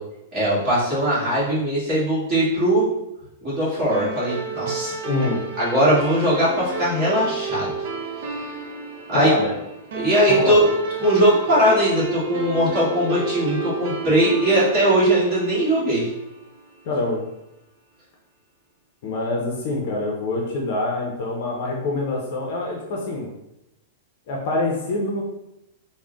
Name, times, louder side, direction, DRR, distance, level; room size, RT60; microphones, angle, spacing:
voice 1, 0.3-2.9 3.4-4.9 5.6-7.7 9.1-9.3 9.9-10.7 11.0-16.1, right 1 dB, 25° right, -9 dB, 1.4 m, -20 dB
sound 1, 3.9-16.7, right 4 dB, 55° right, 0.6 m, -32 dB
voice 2, 5.0-5.4 9.1-9.5 10.3-10.6 16.9-17.2 19.0-23.3 24.3-25.2, left 2 dB, 45° left, -1 dB, 0.6 m, -25 dB
3.6 x 2.1 x 3.7 m, 0.89 s
supercardioid pair, 175°, 0 cm